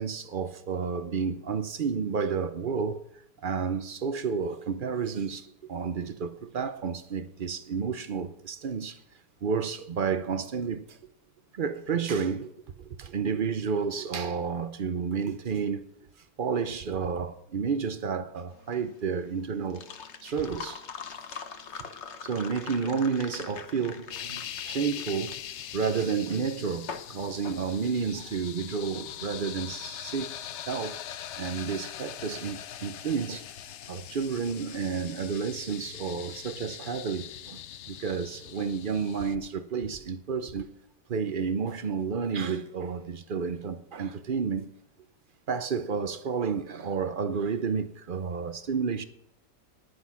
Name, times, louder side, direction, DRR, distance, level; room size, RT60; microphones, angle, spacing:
voice 1, 0.0-3.0 3.4-9.0 9.4-11.0 11.5-12.5 12.8-15.9 16.4-19.9 20.2-20.8 21.3-21.4 21.7-21.9 22.2-25.4 25.7-30.3 30.7-31.0 31.4-33.5 33.9-37.6 37.9-40.7 41.1-44.7 45.5-49.0, right 6 dB, 70° right, 0.4 m, -31 dB
sound 1, 18.5-28.4, left 6 dB, 45° left, 1.0 m, -43 dB
sound 2, 24.1-39.4, left 10 dB, 85° left, 0.6 m, -42 dB
10.5 x 10.0 x 5.8 m
omnidirectional pair, 1.9 m